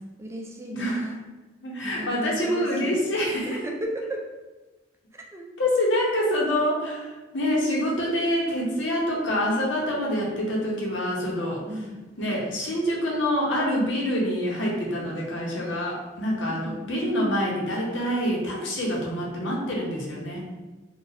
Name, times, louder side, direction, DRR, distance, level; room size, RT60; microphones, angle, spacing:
voice 1, 0.2-1.2 1.8-3.0 3.5-4.3 5.1-5.5 11.7-12.0 16.4-16.9, right 1 dB, 15° right, 0 dB, 0.4 m, -35 dB
voice 2, 0.7-1.1 1.6-3.6 5.6-11.6 12.2-20.4, equal, 85° left, -3 dB, 0.9 m, -26 dB
2.6 x 2.3 x 4.0 m, 1.2 s
head